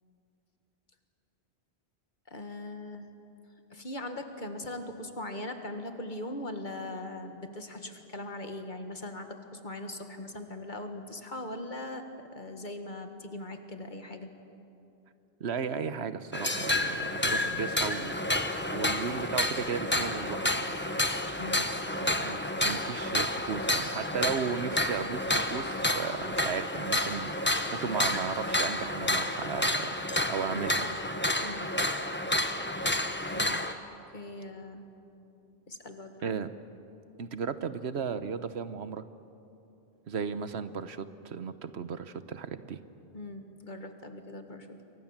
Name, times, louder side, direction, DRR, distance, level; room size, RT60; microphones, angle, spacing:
voice 1, 2.3-3.1 3.7-12.0 12.3-14.3 21.4-21.9 30.5-30.8 31.4-31.6 33.3-33.6 34.1-34.8 35.7-36.3 43.1-44.8, left 1 dB, 50° left, 6 dB, 1.9 m, -40 dB
voice 2, 15.4-18.2 18.7-20.6 22.0-22.4 22.6-29.9 30.3-31.0 36.2-36.5 37.2-39.0 40.1-42.8, right 6 dB, 85° right, 12 dB, 1.2 m, -35 dB
sound 1, 16.3-33.7, left 1 dB, 10° left, 1.1 m, -30 dB
28.0 x 23.5 x 7.4 m, 2.8 s
omnidirectional pair, 1.1 m